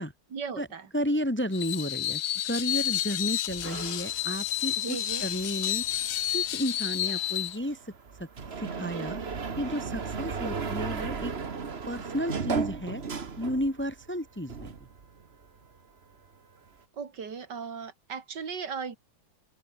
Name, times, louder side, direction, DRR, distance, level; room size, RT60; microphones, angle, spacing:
voice 1, 0.3-0.8 4.8-5.2 17.0-19.0, right 6 dB, 80° right, 3.0 m, -37 dB
voice 2, 0.9-6.1 6.3-7.9 8.2-8.3 8.6-11.3 11.9-13.0 13.4-14.7, equal, 5° left, 1.6 m, -32 dB
Screech, 1.5-7.6, left 12 dB, 70° left, 1.3 m, -30 dB
sound 1, 3.5-14.1 14.4-15.7, right 5 dB, 40° right, 1.7 m, -36 dB
omnidirectional pair, 1.8 m